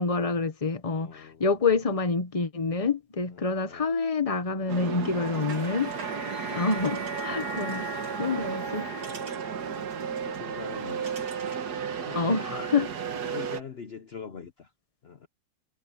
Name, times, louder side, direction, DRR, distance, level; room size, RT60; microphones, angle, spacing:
voice 1, 0.0-5.9 6.5-8.9 12.1-12.9, left 4 dB, 25° left, 0.9 m, -27 dB
voice 2, 0.9-1.4 3.3-4.0 4.5-5.4 9.3-9.9 10.2-11.5 12.0-12.7 13.3-14.7 15.0-15.3, left 6 dB, 55° left, 0.7 m, -44 dB
sound 1, 4.7-13.6, right 6 dB, 50° right, 1.8 m, -33 dB
sound 2, 5.2-11.7, right 4 dB, 70° right, 4.5 m, -50 dB
Wind instrument woodwind instrument, 5.4-9.3, left 10 dB, 30° right, 6.9 m, -45 dB
omnidirectional pair, 2.3 m